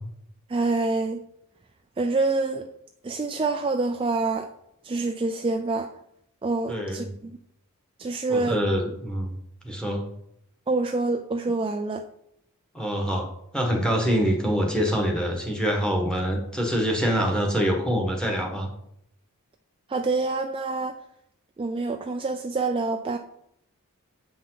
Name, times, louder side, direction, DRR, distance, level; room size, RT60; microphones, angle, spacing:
voice 1, 0.5-1.2 2.0-2.7 3.0-4.5 4.8-5.9 6.4-7.4 8.0-8.6 10.7-12.0 19.9-20.9 21.6-23.2, right 3 dB, 25° right, 0.4 m, -26 dB
voice 2, 6.7-7.0 8.3-9.3 9.6-10.0 12.7-13.3 13.5-18.7, equal, 5° left, 1.4 m, -25 dB
7.8 x 5.4 x 3.9 m
head